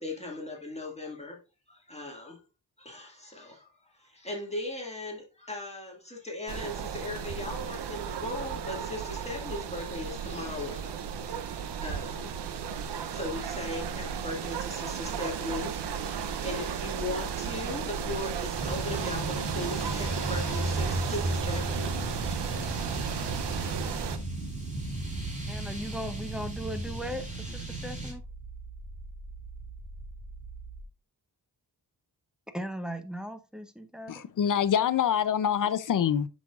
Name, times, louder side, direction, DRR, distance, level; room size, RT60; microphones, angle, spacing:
voice 1, 0.0-1.4 1.7-2.4 2.8-3.7 4.0-12.3 12.7-12.8 13.1-22.4, left 1 dB, 15° left, 1.9 m, -38 dB
sound 1, 6.5-24.2, right 7 dB, 80° right, 0.7 m, -35 dB
sound 2, 15.0-30.8, right 2 dB, 35° right, 3.0 m, -44 dB
sound 3, 18.5-28.1, right 2 dB, 20° right, 2.7 m, -34 dB
voice 2, 25.5-28.2 32.5-34.2, equal, ahead, 0.8 m, -38 dB
voice 3, 34.1-36.3, left 9 dB, 50° left, 0.6 m, -25 dB
7.8 x 6.2 x 2.4 m
wide cardioid pair, 105°, 41 cm